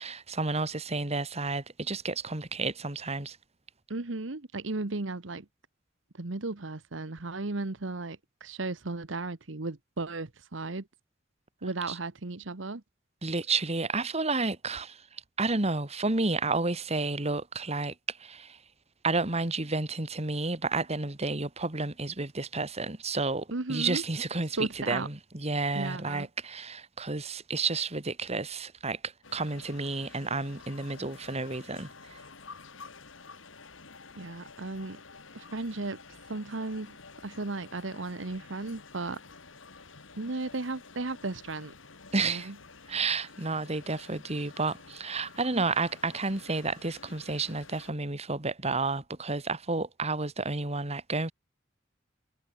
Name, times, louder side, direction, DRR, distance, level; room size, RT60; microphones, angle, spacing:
voice 1, 0.0-3.4 11.9-12.0 13.2-15.1 15.4-18.6 19.0-32.2 42.1-42.5 42.9-51.3, right 3 dB, 35° right, 2.1 m, -31 dB
voice 2, 3.9-5.4 6.2-10.8 11.6-12.8 23.5-24.0 24.5-25.1 25.7-26.3 34.2-35.0 35.3-36.0 36.3-36.9 37.2-39.2 40.2-41.7 42.2-42.5, right 3 dB, 70° right, 1.3 m, -35 dB
sound 1, 29.2-47.9, left 4 dB, 80° left, 3.1 m, -50 dB
head